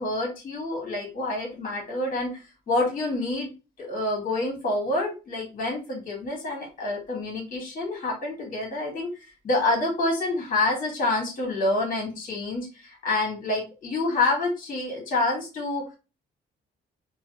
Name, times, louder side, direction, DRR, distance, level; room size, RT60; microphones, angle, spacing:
voice 1, 0.0-3.5 3.8-15.8, left 2 dB, 45° left, 0 dB, 1.2 m, -27 dB
2.5 x 2.1 x 2.6 m, 0.31 s
cardioid pair, 90°, 20 cm